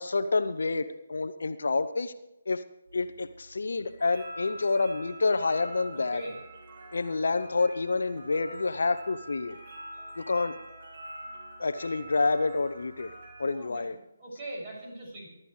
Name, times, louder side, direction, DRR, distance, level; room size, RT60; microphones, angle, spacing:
voice 1, 0.0-2.1 2.5-2.6 2.9-6.2 6.9-9.6 10.2-10.5 11.6-13.1 13.4-13.9, left 3 dB, 65° left, 11 dB, 0.9 m, -28 dB
sound 1, 2.9-13.6, right 1 dB, 50° right, 4.5 m, -46 dB
voice 2, 5.9-6.4 9.9-10.0 13.5-13.8 14.2-15.3, right 1 dB, 25° right, -3 dB, 7.0 m, -41 dB
23.5 x 12.5 x 3.3 m, 0.89 s
figure-of-eight pair, 150°, 0 cm